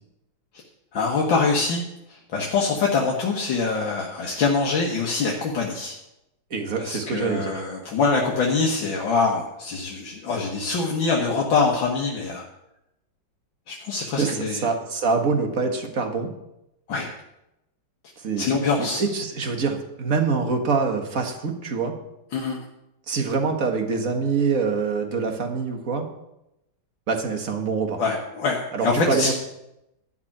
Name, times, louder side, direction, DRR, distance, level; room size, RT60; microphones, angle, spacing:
voice 1, 0.9-1.8 2.3-6.0 6.8-12.4 13.7-14.7 16.9-17.1 18.4-19.0 22.3-22.6 28.0-29.3, left 4 dB, 70° left, -2 dB, 2.1 m, -24 dB
voice 2, 6.5-7.6 14.2-16.3 18.2-21.9 23.1-26.1 27.1-28.0 28.7-29.3, right 4 dB, 45° right, 4 dB, 1.9 m, -25 dB
13.0 x 6.0 x 8.7 m, 0.88 s
omnidirectional pair, 2.2 m